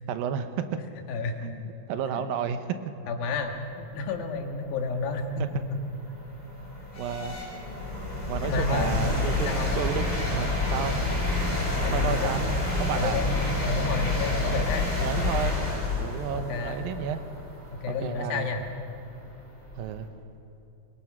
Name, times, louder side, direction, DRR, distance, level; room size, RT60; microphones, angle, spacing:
voice 1, 0.1-0.8 1.4-2.8 7.0-7.4 8.3-9.5 9.8-11.0 11.9-12.4 12.8-13.2 15.0-15.6 16.0-17.2 17.9-18.5 19.8-20.1, right 8 dB, 80° right, 10 dB, 2.7 m, -32 dB
voice 2, 1.1-1.4 2.1-2.2 3.1-5.8 8.4-9.1 9.5-9.7 11.8-14.9 16.3-16.8 17.7-18.6, left 3 dB, 80° left, 4 dB, 3.4 m, -31 dB
sound 1, 4.5-4.6 5.2-20.0, left 2 dB, 10° left, 5.2 m, -29 dB
23.0 x 20.5 x 6.1 m, 2.9 s
omnidirectional pair, 4.2 m